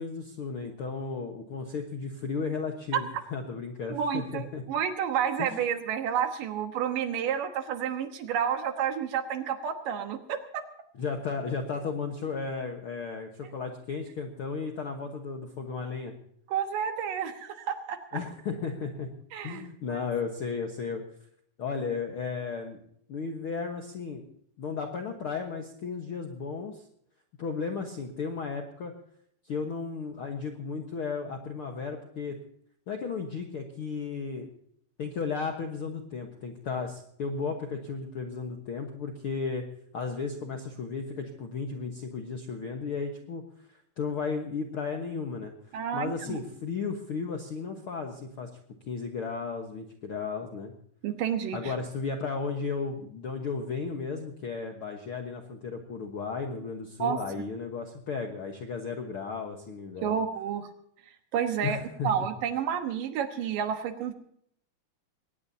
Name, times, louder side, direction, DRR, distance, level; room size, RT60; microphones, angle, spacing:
voice 1, 0.0-4.6 5.4-5.7 11.0-16.1 18.1-19.1 19.4-21.0 21.6-22.8 23.1-24.2 24.6-26.8 27.4-28.9 29.4-32.4 32.9-34.5 35.0-39.6 39.9-45.5 45.9-48.5 48.9-50.7 51.5-60.1 61.6-62.1, left 5 dB, 65° left, 3 dB, 1.4 m, -34 dB
voice 2, 3.9-10.6 16.5-18.2 19.3-20.0 45.7-46.4 51.0-51.6 57.0-57.2 60.0-60.7 61.3-61.8 62.0-64.1, right 8 dB, 70° right, 6 dB, 2.7 m, -30 dB
21.5 x 18.5 x 2.8 m, 0.67 s
omnidirectional pair, 4.3 m